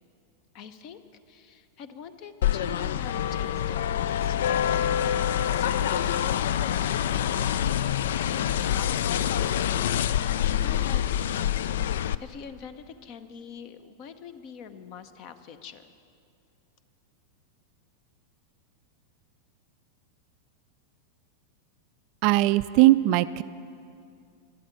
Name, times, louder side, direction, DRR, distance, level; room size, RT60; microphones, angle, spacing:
voice 1, 0.5-1.0 1.3-6.2 6.5-11.3 12.2-15.9, left 7 dB, 40° left, 12 dB, 0.8 m, -45 dB
sound 1, 2.4-12.1, left 10 dB, 60° left, 0.3 m, -26 dB
voice 2, 22.2-23.4, right 16 dB, 45° right, 15 dB, 0.3 m, -20 dB
12.5 x 11.5 x 8.5 m, 2.4 s
figure-of-eight pair, 90°, 0 cm